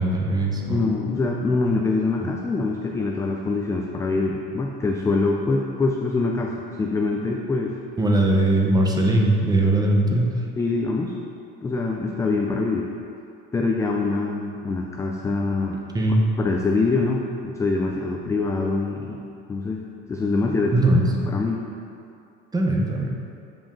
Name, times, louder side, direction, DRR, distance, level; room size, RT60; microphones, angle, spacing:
voice 1, 0.0-0.8 8.0-10.3 15.9-16.2 20.7-21.3 22.5-23.1, right 1 dB, 15° right, 0 dB, 0.8 m, -20 dB
voice 2, 0.7-7.8 10.6-11.1 11.6-12.9 13.5-15.8 16.4-19.2 19.5-20.8 21.3-21.6, left 3 dB, 10° left, 0 dB, 0.3 m, -24 dB
7.5 x 4.9 x 3.7 m, 2.5 s
supercardioid pair, 115°, 29 cm